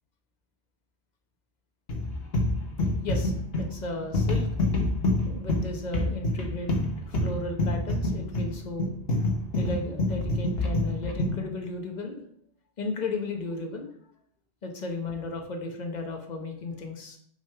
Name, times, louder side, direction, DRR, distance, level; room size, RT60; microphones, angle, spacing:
sound 1, 1.9-11.5, left 2 dB, 60° left, 1.3 m, -27 dB
voice 1, 3.0-4.5 5.3-6.7 7.1-8.9 9.5-12.2 12.8-13.9 14.6-17.2, left 3 dB, 40° left, 3 dB, 1.1 m, -35 dB
6.2 x 3.7 x 5.6 m, 0.65 s
omnidirectional pair, 1.1 m